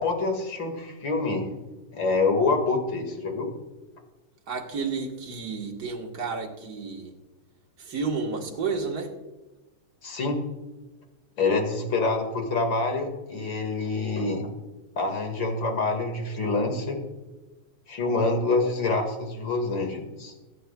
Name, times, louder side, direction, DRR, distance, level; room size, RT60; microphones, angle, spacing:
voice 1, 0.0-1.5 1.9-3.5 10.0-10.4 11.4-14.5 15.0-17.0 17.9-20.3, left 3 dB, 45° left, 4 dB, 2.3 m, -26 dB
voice 2, 4.5-7.1 7.8-9.1, right 4 dB, 45° right, 1 dB, 1.5 m, -31 dB
21.5 x 9.4 x 2.3 m, 1.1 s
omnidirectional pair, 3.5 m